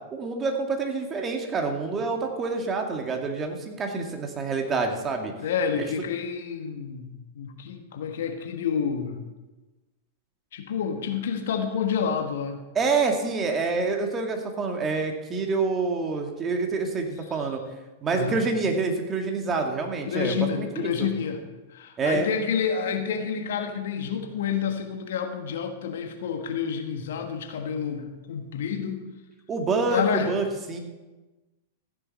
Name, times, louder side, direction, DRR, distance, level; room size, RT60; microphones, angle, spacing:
voice 1, 0.1-5.3 5.8-5.9 12.8-17.6 18.0-20.9 22.0-22.3 29.5-30.8, right 4 dB, 25° right, 3 dB, 2.0 m, -27 dB
voice 2, 5.4-9.2 10.5-12.6 18.1-18.4 20.1-21.4 21.7-29.1 29.9-30.3, left 7 dB, 65° left, 6 dB, 1.4 m, -29 dB
14.5 x 9.8 x 4.3 m, 1.1 s
figure-of-eight pair, 100°, 0 cm